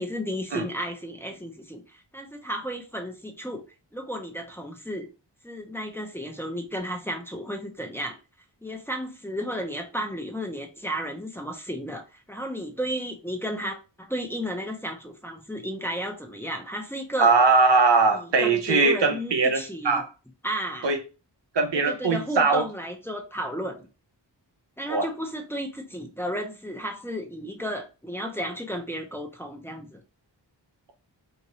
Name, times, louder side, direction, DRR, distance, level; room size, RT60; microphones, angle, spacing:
voice 1, 0.0-3.6 3.9-5.1 5.4-8.2 8.6-12.0 12.3-17.3 18.1-20.0 20.4-20.9 21.7-23.8 24.8-30.0, equal, 5° left, 0.8 m, -33 dB
voice 2, 17.2-20.1 20.8-21.0 21.5-22.6 24.9-25.1, right 4 dB, 70° right, 0.7 m, -21 dB
2.8 x 2.6 x 3.0 m
cardioid pair, 45°, 44 cm